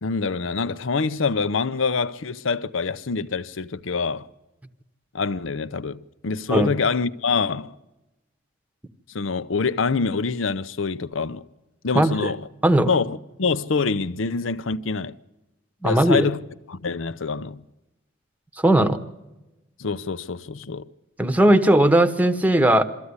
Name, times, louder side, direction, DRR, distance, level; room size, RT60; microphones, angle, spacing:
voice 1, 0.0-4.2 5.1-7.7 9.1-11.4 11.8-12.4 12.9-15.2 15.8-16.4 16.7-17.6 19.8-20.8, left 4 dB, 70° left, 0.7 m, -25 dB
voice 2, 15.8-16.3 18.6-19.0 21.2-22.8, right 1 dB, 10° right, 1.0 m, -17 dB
23.5 x 14.0 x 9.7 m
head